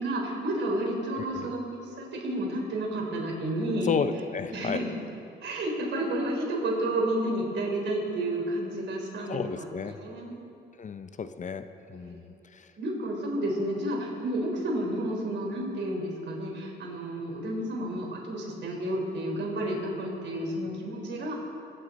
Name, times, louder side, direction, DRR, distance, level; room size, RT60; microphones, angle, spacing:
voice 1, 0.0-3.9 4.5-4.9 5.4-10.3 11.9-12.2 12.8-21.3, right 1 dB, 65° right, -1 dB, 3.9 m, -31 dB
voice 2, 1.2-1.5 3.8-4.8 9.3-10.0 10.8-12.7, left 5 dB, 40° left, 10 dB, 0.7 m, -33 dB
22.0 x 9.7 x 4.2 m, 2.7 s
cardioid pair, 90°, 20 cm